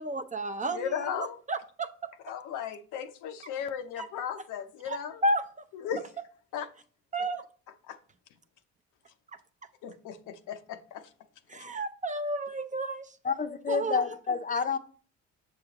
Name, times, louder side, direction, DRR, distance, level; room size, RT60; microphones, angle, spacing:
voice 1, 0.0-1.9 4.0-4.1 4.9-5.4 7.1-7.4 11.5-13.1 13.7-14.0, right 1 dB, 25° right, 0.6 m, -32 dB
voice 2, 0.7-1.4 2.2-5.2 5.7-6.0 6.5-6.7 7.9-8.0 9.8-11.1 11.5-11.6, left 8 dB, 90° left, 0.7 m, -36 dB
voice 3, 13.2-14.8, left 5 dB, 25° left, 0.6 m, -29 dB
6.7 x 6.6 x 2.9 m
cardioid pair, 90°, 30 cm